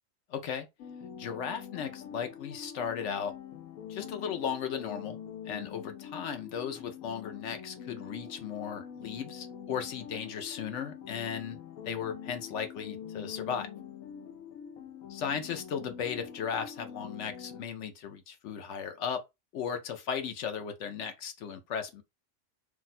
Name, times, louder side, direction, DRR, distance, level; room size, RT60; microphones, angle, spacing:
voice 1, 0.3-0.7 1.1-3.3 3.9-5.2 5.4-11.6 11.8-13.7 15.1-19.2 19.5-22.0, left 7 dB, 70° left, 0.8 m, -36 dB
sound 1, 0.8-17.6, left 8 dB, 90° left, 1.0 m, -45 dB
2.6 x 2.2 x 4.0 m
omnidirectional pair, 1.4 m